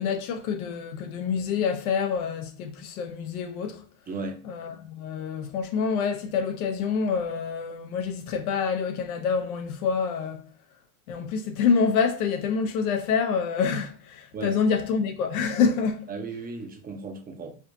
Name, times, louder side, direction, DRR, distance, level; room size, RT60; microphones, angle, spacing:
voice 1, 0.0-3.8 4.4-10.4 11.1-16.0, left 6 dB, 85° left, 0.9 m, -27 dB
voice 2, 4.1-4.4 14.3-14.6 16.1-17.5, right 3 dB, 20° right, 0.6 m, -35 dB
4.8 x 2.9 x 2.6 m
supercardioid pair, 125°, 42 cm